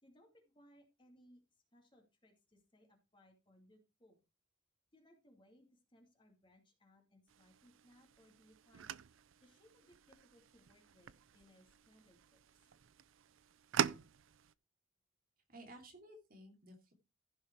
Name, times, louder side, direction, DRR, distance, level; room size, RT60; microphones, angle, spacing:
voice 1, 0.0-4.2 4.9-9.0 9.4-12.4, equal, 25° left, 2 dB, 2.5 m, -67 dB
sound 1, 7.3-14.5, right 8 dB, 85° right, 0.5 m, -44 dB
voice 2, 15.5-16.9, right 1 dB, 45° right, 2 dB, 3.0 m, -55 dB
15.0 x 5.5 x 4.6 m, 0.27 s
head